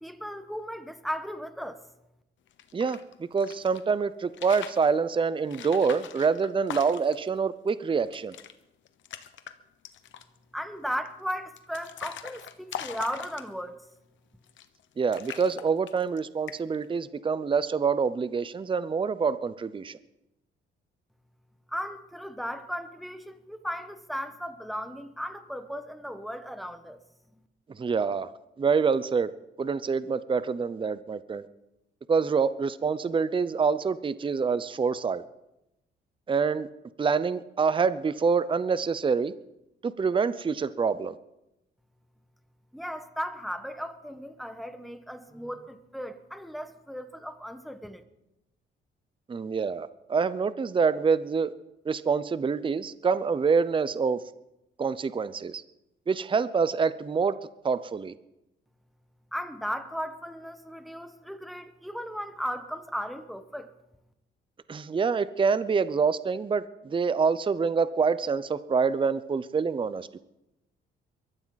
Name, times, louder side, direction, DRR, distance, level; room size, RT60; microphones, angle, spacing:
voice 1, 0.0-1.8 10.5-13.8 21.7-27.0 27.3-27.4 42.7-48.0 59.3-63.7, equal, ahead, 8 dB, 1.5 m, -36 dB
sound 1, 2.5-3.8 4.2-4.9 5.5-7.3 7.7-7.8 8.0-8.5 8.8-9.5 9.8-10.4 11.0-13.8 14.4-14.8 15.1-16.2 16.5-16.8, left 10 dB, 75° left, 1.1 m, -41 dB
voice 2, 2.7-8.3 15.0-20.0 27.8-28.3 28.6-29.3 29.6-31.5 32.1-35.2 36.3-36.7 37.0-39.3 39.8-41.2 49.3-51.5 51.9-54.2 54.8-55.6 56.1-57.3 57.6-58.1 64.7-70.2, right 5 dB, 25° right, 15 dB, 0.6 m, -26 dB
22.5 x 14.0 x 4.1 m, 0.90 s
cardioid pair, 90°, 20 cm